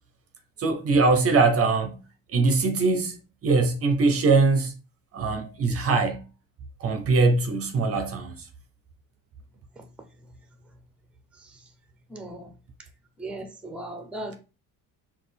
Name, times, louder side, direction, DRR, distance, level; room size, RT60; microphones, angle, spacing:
voice 1, 0.6-2.0 2.3-4.7 5.1-6.2 6.8-8.5, right 3 dB, 40° right, 0.6 m, -22 dB
voice 2, 12.1-12.6 13.2-14.4, right 1 dB, 5° right, 0.6 m, -38 dB
4.0 x 2.4 x 3.4 m
cardioid pair, 110°, 35 cm